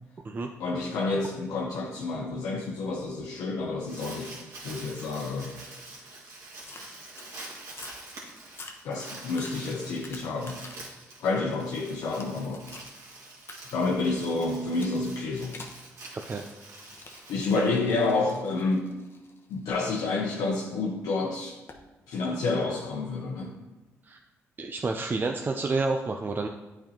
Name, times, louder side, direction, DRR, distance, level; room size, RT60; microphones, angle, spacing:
voice 1, 0.6-4.3 4.6-5.6 8.8-10.6 11.2-12.6 13.7-15.6 17.3-19.0 19.5-21.6 22.1-23.6, left 3 dB, 80° left, -2 dB, 0.7 m, -29 dB
Crumpling crinkling, 3.6-18.2, right 2 dB, 60° right, 2.0 m, -46 dB
sound 1, 6.6-7.3 7.7-8.1 8.5-10.9 11.4-12.9 13.5-13.6 14.7-15.0 15.5-15.8 16.7-20.7 21.7-21.9, left 3 dB, 40° left, 1.0 m, -48 dB
voice 2, 16.1-16.4 24.1-24.2 24.6-26.5, right 3 dB, 35° right, 3 dB, 0.5 m, -29 dB
8.8 x 4.3 x 2.9 m, 1.1 s
supercardioid pair, 60°, 6 cm